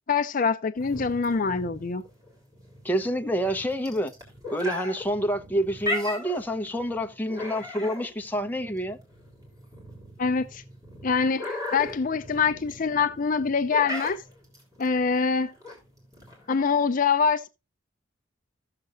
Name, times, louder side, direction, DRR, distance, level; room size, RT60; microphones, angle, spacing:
voice 1, 0.1-2.0 10.2-10.6 11.0-14.2 14.8-15.5 16.5-17.5, left 5 dB, 45° left, 0.5 m, -24 dB
sound 1, 0.8-16.7, left 1 dB, 20° right, 3.7 m, -38 dB
voice 2, 2.8-4.1 4.5-9.0, equal, 10° left, 0.8 m, -28 dB
15.0 x 6.7 x 2.5 m
head